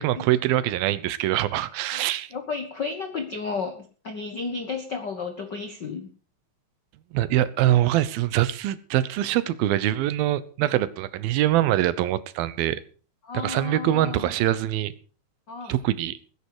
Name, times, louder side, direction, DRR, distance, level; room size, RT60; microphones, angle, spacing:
voice 1, 0.0-2.3 7.1-12.8 13.3-14.9 15.7-16.2, right 13 dB, 80° right, 2.7 m, -24 dB
voice 2, 2.3-6.1 13.2-14.3 15.5-15.7, left 4 dB, 80° left, 0.9 m, -32 dB
19.5 x 10.0 x 4.9 m
omnidirectional pair, 4.3 m